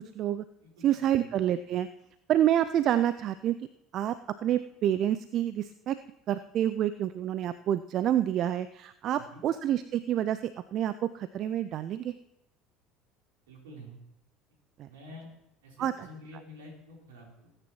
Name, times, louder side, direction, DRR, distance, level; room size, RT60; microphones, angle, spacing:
voice 1, 0.8-1.9 2.3-3.6 3.9-4.2 4.4-6.0 6.3-12.1 14.8-14.9 15.8-15.9, right 11 dB, 45° right, 14 dB, 0.4 m, -28 dB
voice 2, 13.5-14.0 14.9-15.3 15.6-17.5, left 1 dB, 70° right, -1 dB, 3.7 m, -48 dB
19.5 x 9.7 x 3.0 m, 0.84 s
figure-of-eight pair, 65°, 0 cm